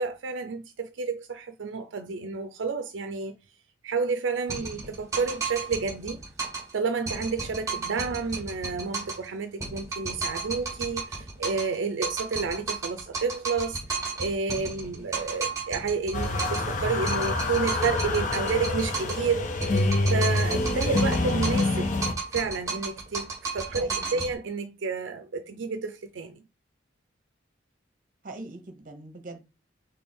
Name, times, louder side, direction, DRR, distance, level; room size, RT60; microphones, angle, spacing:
voice 1, 0.0-3.4 3.8-6.2 6.7-19.4 20.1-21.9 22.3-26.4, right 4 dB, 75° right, 0.5 m, -30 dB
sound 1, 4.5-6.7 7.1-9.3 9.6-11.8 12.0-16.7 17.1-19.3 19.6-21.8 22.0-24.3, right 4 dB, 15° right, 1.1 m, -33 dB
sound 2, 16.1-22.1, left 2 dB, 40° left, 0.6 m, -26 dB
voice 2, 23.8-24.3 28.2-29.4, right 2 dB, 45° right, 0.9 m, -42 dB
3.6 x 3.2 x 4.3 m
head